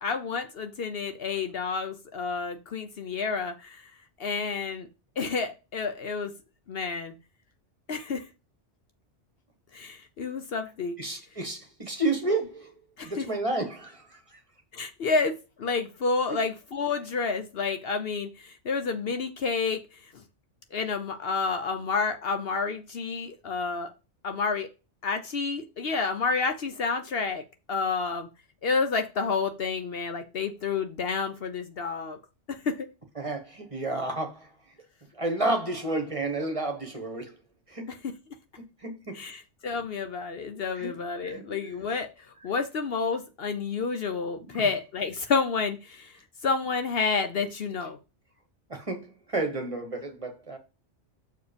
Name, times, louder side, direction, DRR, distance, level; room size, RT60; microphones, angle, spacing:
voice 1, 0.0-3.9 4.2-4.9 5.2-6.3 6.7-7.1 7.9-8.2 9.7-11.0 13.0-13.3 14.7-19.8 20.7-23.9 24.2-24.7 25.0-27.4 27.7-28.3 28.6-32.2 32.5-32.9 39.1-46.1 46.4-48.0, left 4 dB, 60° left, 0.9 m, -29 dB
voice 2, 11.0-12.7 13.0-14.4 33.2-34.5 35.1-37.3 37.7-37.9 38.6-39.2 40.7-40.9 41.2-41.7 44.4-44.6 48.7-50.6, right 2 dB, 30° right, 1.1 m, -31 dB
6.6 x 4.7 x 5.1 m
omnidirectional pair, 1.2 m